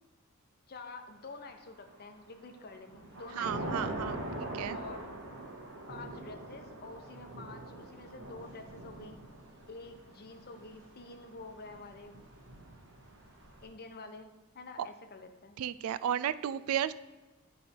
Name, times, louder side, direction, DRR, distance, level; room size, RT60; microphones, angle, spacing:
voice 1, 0.7-3.8 4.7-5.1 5.9-9.2 9.7-12.2 13.6-14.3 14.5-15.6, left 3 dB, 45° left, 6 dB, 0.7 m, -48 dB
Thunder / Rain, 1.6-2.1 2.5-13.7, right 1 dB, 60° right, 1.5 m, -43 dB
voice 2, 3.4-4.8 14.8-14.9 15.6-16.9, right 9 dB, 75° right, 16 dB, 0.3 m, -34 dB
9.9 x 3.3 x 4.3 m, 1.2 s
head